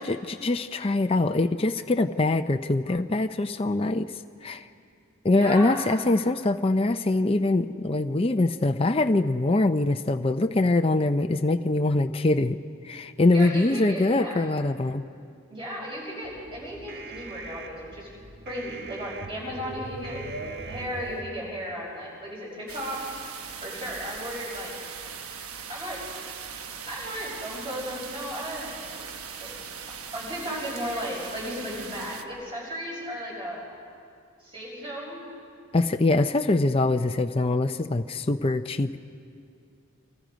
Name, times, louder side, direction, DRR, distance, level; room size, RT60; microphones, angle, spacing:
voice 1, 0.0-4.1 4.4-4.6 5.2-12.6 12.8-15.0 35.7-39.0, left 2 dB, 25° left, 7 dB, 0.5 m, -23 dB
voice 2, 5.3-5.8 13.3-14.4 15.5-18.1 18.4-20.2 20.6-23.0 23.6-24.8 25.7-26.0 26.8-29.1 29.4-29.5 30.1-33.6 34.4-35.2, equal, 25° right, -4 dB, 6.8 m, -35 dB
sound 1, 16.2-21.2, right 3 dB, 50° right, 1.5 m, -40 dB
sound 2, 22.7-32.2, right 7 dB, 85° right, 1.2 m, -40 dB
26.5 x 26.0 x 5.2 m, 2.4 s
head